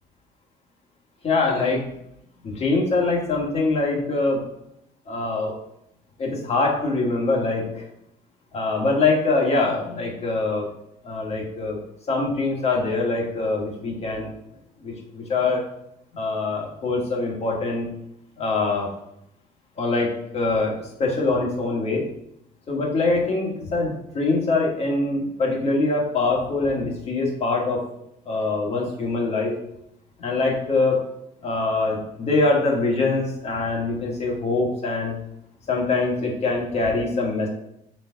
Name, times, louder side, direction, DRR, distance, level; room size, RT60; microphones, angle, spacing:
voice 1, 1.2-1.8 2.4-4.4 5.1-5.5 6.2-7.8 8.5-10.7 11.0-11.8 12.1-14.3 14.8-15.6 16.1-17.9 18.4-18.9 19.8-20.7 21.0-22.0 22.7-27.8 28.2-29.5 30.2-31.0 31.4-35.1 35.7-37.5, left 3 dB, 35° left, -1 dB, 1.7 m, -23 dB
6.0 x 4.3 x 4.0 m, 0.78 s
cardioid pair, 135°, 17 cm